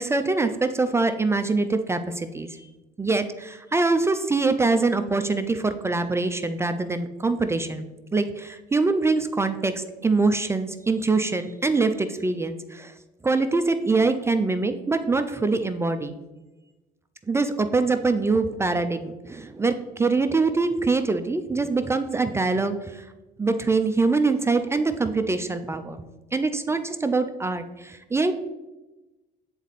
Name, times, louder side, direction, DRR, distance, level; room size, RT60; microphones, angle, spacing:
voice 1, 0.0-2.6 3.0-12.9 13.2-16.2 17.3-23.1 23.4-26.0 26.3-28.3, right 3 dB, 15° right, 8 dB, 0.4 m, -24 dB
7.8 x 4.1 x 4.0 m, 1.1 s
cardioid pair, 110°, 17 cm